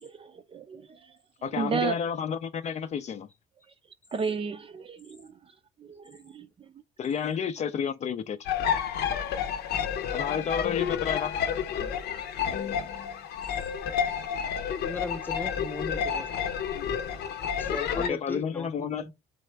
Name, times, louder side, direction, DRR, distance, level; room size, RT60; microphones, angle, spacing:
voice 1, 0.0-2.0 4.1-6.7, right 6 dB, 35° right, 0.5 m, -34 dB
voice 2, 1.4-3.3 7.0-8.4 10.1-11.4 18.0-19.0, left 7 dB, 40° left, 0.4 m, -31 dB
sound 1, 8.4-18.1, left 8 dB, 75° left, 0.7 m, -30 dB
voice 3, 14.8-16.3 17.6-19.1, left 3 dB, 10° left, 0.9 m, -36 dB
4.1 x 3.2 x 3.3 m
cardioid pair, 110°, 17 cm